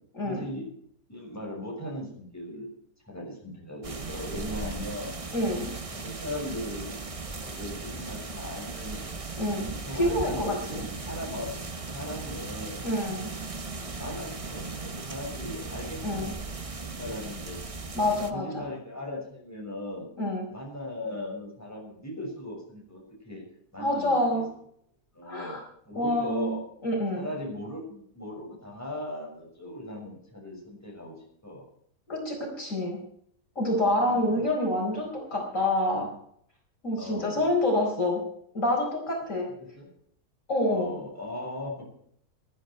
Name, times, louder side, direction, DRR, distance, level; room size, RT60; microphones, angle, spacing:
voice 1, 0.2-0.6 1.1-2.7 3.0-5.2 5.9-6.9 7.5-9.1 9.7-11.5 11.9-12.9 13.8-16.6 16.9-17.6 18.1-20.1 20.5-23.4 23.7-24.4 25.1-25.6 25.9-26.6 27.1-31.2 31.4-31.6 34.1-34.4 37.0-37.5 39.6-39.9 40.7-41.7, left 1 dB, 10° left, -2 dB, 6.1 m, -38 dB
sound 1, 3.8-18.3, right 3 dB, 25° right, 1.0 m, -37 dB
voice 2, 5.3-5.7 9.4-9.7 9.9-10.9 12.8-13.3 16.0-16.3 17.9-18.6 20.2-20.5 23.8-24.5 25.3-25.6 25.9-26.6 26.8-27.3 32.1-33.0 33.6-36.1 36.8-38.2 38.5-39.5 40.5-40.9, left 1 dB, 55° left, 0 dB, 4.9 m, -27 dB
19.5 x 12.0 x 4.5 m, 0.65 s
omnidirectional pair, 1.6 m